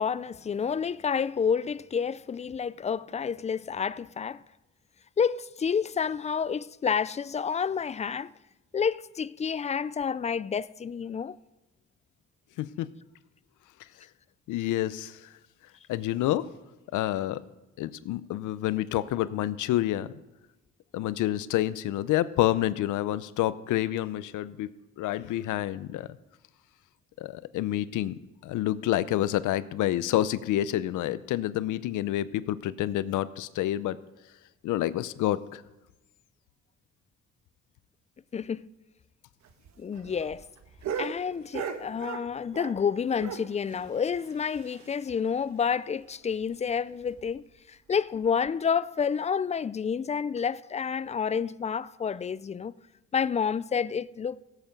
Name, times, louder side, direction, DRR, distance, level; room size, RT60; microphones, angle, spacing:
voice 1, 0.0-4.4 5.2-8.3 8.7-11.4 38.3-38.7 39.8-40.5 41.0-52.7 53.1-54.4, left 6 dB, 25° left, 0.3 m, -29 dB
voice 2, 14.5-15.3 15.9-16.5 16.9-17.4 17.8-20.1 20.9-26.1 27.2-28.1 28.4-34.0 34.6-35.6, left 14 dB, 85° left, 0.6 m, -28 dB
sound 1, 39.4-42.9 43.2-45.1 45.4-45.5 45.8-45.9 46.3-46.4 47.0-47.3 48.1-48.3, right 7 dB, 65° right, 1.3 m, -38 dB
16.5 x 8.1 x 5.2 m
cardioid pair, 90°, 30 cm